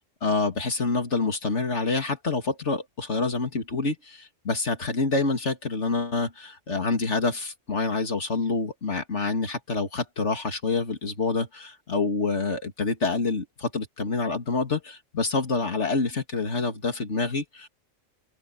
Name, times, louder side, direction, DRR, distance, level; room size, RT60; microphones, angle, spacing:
voice 1, 0.2-17.7, left 3 dB, 60° left, 2.7 m, -27 dB
open air
omnidirectional pair, 1.4 m